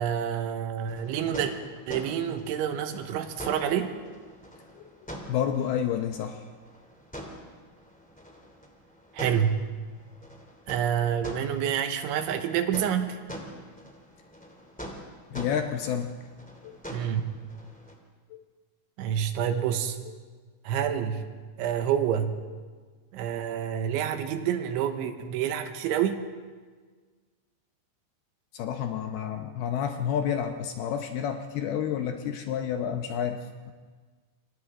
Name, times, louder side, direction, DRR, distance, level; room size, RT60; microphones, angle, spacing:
voice 1, 0.0-1.5 1.9-3.9 9.1-9.6 10.7-13.2 16.9-17.2 19.0-20.0 20.7-21.2 21.6-22.4 23.1-26.2, right 9 dB, 90° right, 7 dB, 3.6 m, -28 dB
sound 1, 0.8-17.9, equal, 5° left, 1.3 m, -44 dB
voice 2, 5.3-6.4 15.3-16.1 16.6-16.8 18.3-18.4 28.5-33.7, left 8 dB, 75° left, 5 dB, 2.4 m, -30 dB
28.5 x 24.5 x 3.7 m, 1.5 s
omnidirectional pair, 5.3 m